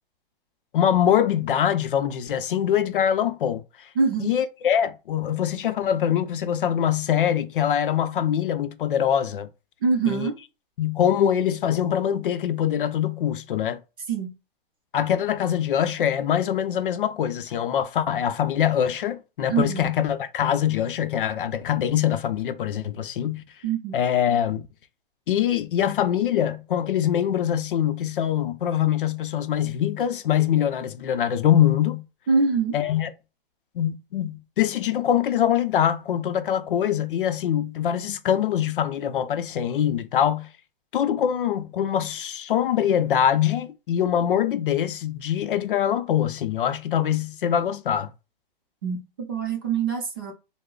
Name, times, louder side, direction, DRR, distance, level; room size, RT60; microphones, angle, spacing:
voice 1, 0.7-3.9 4.2-9.5 10.1-10.3 10.8-13.8 14.9-23.4 23.9-24.7 25.3-32.0 32.7-33.1 33.8-40.5 40.9-48.1, left 9 dB, 60° left, 0.5 m, -23 dB
voice 2, 4.0-4.3 9.8-10.4 14.1-14.3 19.5-19.9 23.6-24.0 32.3-32.8 48.8-49.0 49.3-50.3, right 5 dB, 25° right, 0.5 m, -24 dB
3.2 x 2.0 x 3.7 m
hypercardioid pair, 175°, 30 cm